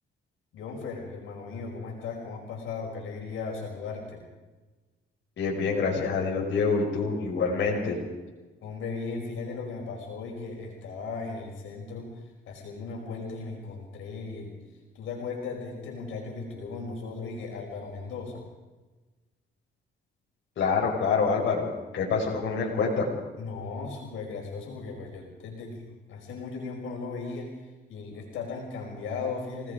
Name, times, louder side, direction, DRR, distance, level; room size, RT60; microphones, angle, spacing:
voice 1, 0.5-4.2 8.6-14.6 14.9-18.5 23.4-29.7, left 4 dB, 85° left, 0 dB, 5.4 m, -37 dB
voice 2, 5.4-8.0 20.6-21.7 21.9-23.1, left 4 dB, 65° left, -1 dB, 5.4 m, -26 dB
28.5 x 18.5 x 5.1 m, 1.2 s
cardioid pair, 90°, 20 cm